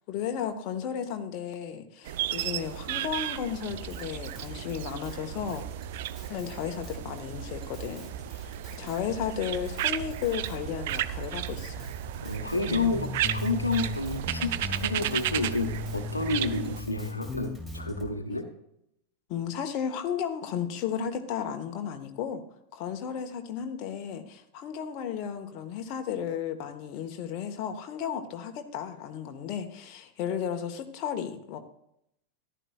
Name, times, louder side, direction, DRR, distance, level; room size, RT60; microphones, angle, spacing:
voice 1, 0.1-5.6 6.3-11.9 19.3-22.4 22.7-31.6, left 8 dB, 40° left, 5 dB, 1.1 m, -34 dB
sound 1, 2.1-16.8, right 12 dB, 55° right, 0.5 m, -34 dB
Drum kit, 3.7-18.1, right 6 dB, 10° right, 2.3 m, -45 dB
voice 2, 12.2-18.5, left 3 dB, 85° left, 6 dB, 1.1 m, -30 dB
sound 2, 12.7-14.0 14.3-18.0, left 4 dB, 10° left, 0.3 m, -37 dB
14.5 x 11.5 x 2.3 m, 0.77 s
figure-of-eight pair, 90°, 0 cm